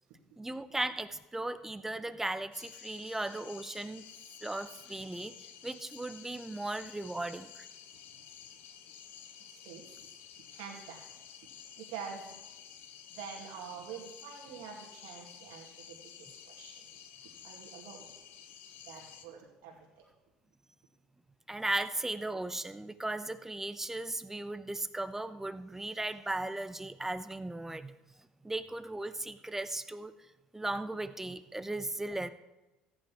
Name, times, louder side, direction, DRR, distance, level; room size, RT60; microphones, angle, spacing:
voice 1, 0.4-4.0 4.4-7.7 21.5-27.9 28.4-30.1 30.5-32.3, right 2 dB, 10° right, 13 dB, 0.8 m, -37 dB
sound 1, 2.5-19.3, left 9 dB, 65° left, 1.2 m, -52 dB
voice 2, 9.5-9.9 10.4-11.0 11.8-12.3 13.1-17.0 17.4-18.1 18.8-20.0, right 6 dB, 70° right, -2 dB, 2.4 m, -46 dB
14.0 x 9.1 x 4.7 m, 1.0 s
hypercardioid pair, 65°, 3 cm